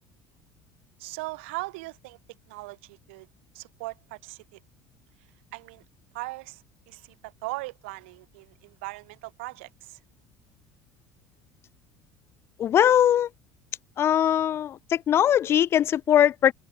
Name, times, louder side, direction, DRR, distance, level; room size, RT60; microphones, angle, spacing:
voice 1, 1.0-2.2 2.5-3.3 3.5-4.6 5.5-5.8 6.1-10.0, right 23 dB, 85° right, 4.2 m, -39 dB
voice 2, 12.6-13.3 14.0-16.5, left 10 dB, 40° left, 0.6 m, -21 dB
open air
supercardioid pair, 105°, 6 cm